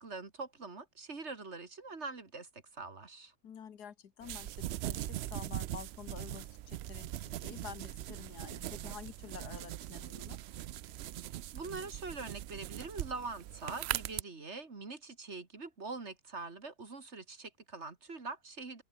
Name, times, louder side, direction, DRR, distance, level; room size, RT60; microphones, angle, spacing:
voice 1, 0.0-3.3 11.5-18.8, right 3 dB, 45° right, 2.6 m, -44 dB
voice 2, 3.4-7.1 7.4-10.4, left 8 dB, 90° left, 2.0 m, -49 dB
sound 1, 4.2-14.2, right 13 dB, 90° right, 0.5 m, -41 dB
open air
omnidirectional pair, 1.6 m